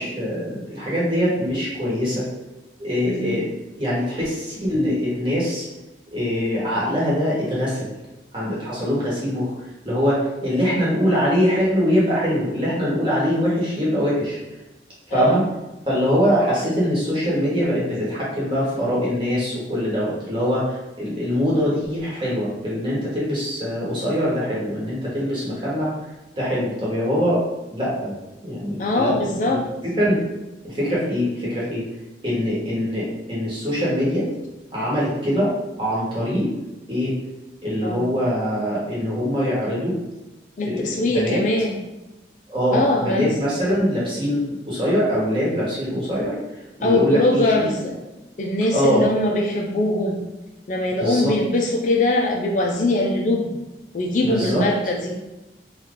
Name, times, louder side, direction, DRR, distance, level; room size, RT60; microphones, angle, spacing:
voice 1, 0.0-2.3 2.8-3.5 3.8-5.6 6.1-7.9 8.3-9.5 9.8-14.4 15.1-15.4 15.9-25.9 26.3-27.4 27.7-28.1 28.4-29.1 29.4-29.6 30.0-30.2 30.6-31.8 32.2-34.3 34.7-35.5 35.8-36.5 36.9-37.1 37.6-40.0 40.6-41.4 42.5-46.4 46.8-47.7 48.7-49.1 51.0-51.3 54.2-54.6, equal, 25° right, -7 dB, 1.1 m, -23 dB
voice 2, 15.1-15.4 28.8-29.6 37.8-38.1 40.6-41.8 42.7-43.4 46.8-48.0 48.4-50.2 50.7-53.6 53.9-55.2, left 1 dB, 45° left, 1 dB, 0.3 m, -22 dB
2.8 x 2.3 x 3.6 m, 1.0 s
head